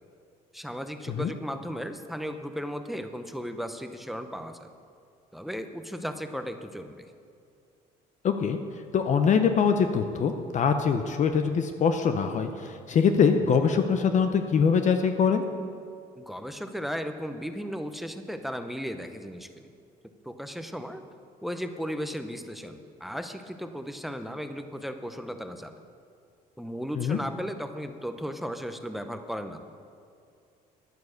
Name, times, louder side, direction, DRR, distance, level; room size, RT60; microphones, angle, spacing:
voice 1, 0.5-4.7 5.3-7.1 16.2-19.7 20.2-21.0 21.4-25.7 26.6-29.6, equal, ahead, 8 dB, 0.7 m, -35 dB
voice 2, 8.2-8.6 8.9-15.4 27.0-27.2, left 6 dB, 45° left, 7 dB, 0.7 m, -23 dB
11.0 x 9.3 x 6.5 m, 2.4 s
cardioid pair, 110°, 17 cm